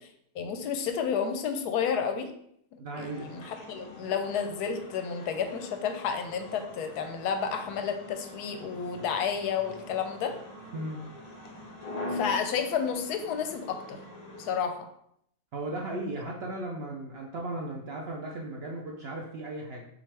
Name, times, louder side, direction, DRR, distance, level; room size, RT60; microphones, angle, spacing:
voice 1, 0.3-2.3 2.7-10.4 12.1-14.0 14.4-14.9 15.8-16.0, left 7 dB, 90° left, 6 dB, 1.1 m, -31 dB
voice 2, 2.8-3.3 10.7-11.0 15.5-19.9, right 2 dB, 60° right, -1 dB, 0.6 m, -36 dB
sound 1, 3.0-14.6, left 2 dB, 60° left, 0.4 m, -43 dB
6.1 x 2.5 x 3.3 m, 0.71 s
omnidirectional pair, 1.6 m